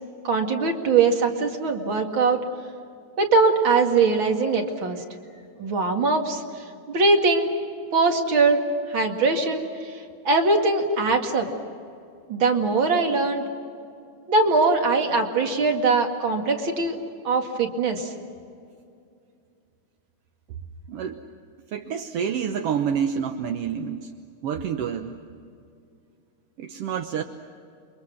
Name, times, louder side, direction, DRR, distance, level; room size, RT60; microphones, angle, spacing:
voice 1, 0.2-2.4 3.2-5.0 5.6-6.4 6.9-7.5 7.9-8.6 8.9-9.9 10.2-11.5 12.3-13.4 14.3-17.0 17.2-18.1, right 3 dB, 45° right, 3 dB, 2.7 m, -21 dB
voice 2, 20.9-21.2 21.7-24.1 24.4-25.2 26.6-27.2, right 7 dB, 65° right, 4 dB, 1.7 m, -28 dB
29.0 x 24.0 x 6.4 m, 2.4 s
omnidirectional pair, 3.5 m